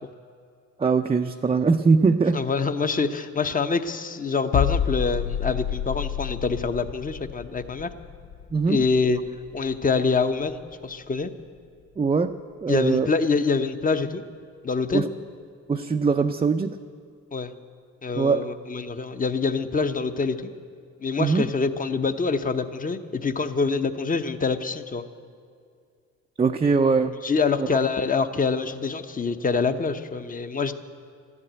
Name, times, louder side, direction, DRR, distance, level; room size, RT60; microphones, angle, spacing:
voice 1, 0.8-2.4 8.5-8.8 12.0-13.1 14.9-15.1 15.7-16.8 18.2-18.4 21.2-21.4 26.4-27.2 27.6-27.7, right 4 dB, 20° right, 4 dB, 0.5 m, -22 dB
voice 2, 2.3-7.9 8.7-9.2 9.5-11.3 12.7-14.2 14.6-15.1 17.3-17.5 18.0-20.5 21.0-25.0 27.2-30.8, left 4 dB, 30° left, 10 dB, 0.9 m, -25 dB
sound 1, 4.5-10.2 10.5-10.7, left 9 dB, 65° left, 0.6 m, -30 dB
13.5 x 11.0 x 8.7 m, 2.3 s
cardioid pair, 90°, 30 cm